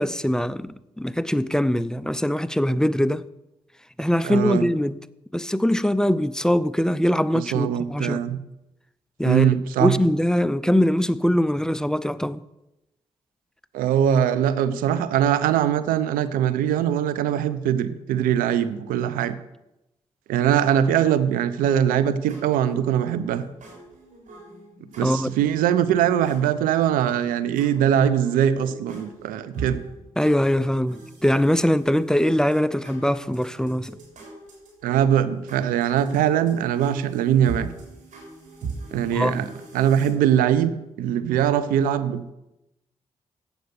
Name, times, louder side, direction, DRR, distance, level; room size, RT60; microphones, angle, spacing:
voice 1, 0.0-3.2 4.0-5.0 5.3-8.2 9.2-9.5 9.8-12.4 25.0-25.3 30.2-34.0 39.1-39.4, equal, 5° left, 0.5 m, -22 dB
voice 2, 4.2-4.7 7.3-8.4 9.2-9.9 13.7-19.4 20.3-23.5 25.0-29.8 34.8-37.7 38.9-42.3, right 10 dB, 85° right, 0.6 m, -22 dB
sound 1, 21.6-40.1, right 4 dB, 65° right, 4.3 m, -42 dB
7.9 x 7.9 x 7.0 m
supercardioid pair, 50°, 14 cm